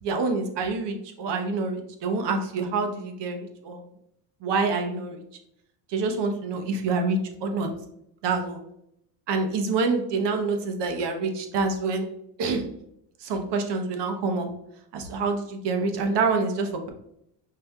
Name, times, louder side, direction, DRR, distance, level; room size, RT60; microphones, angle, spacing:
voice 1, 0.0-3.8 4.4-5.2 5.9-7.7 8.2-8.6 9.3-12.1 12.4-12.7 13.2-14.5 14.9-16.9, right 3 dB, 55° right, 5 dB, 0.9 m, -27 dB
5.2 x 2.8 x 2.3 m, 0.75 s
supercardioid pair, 100°, 50 cm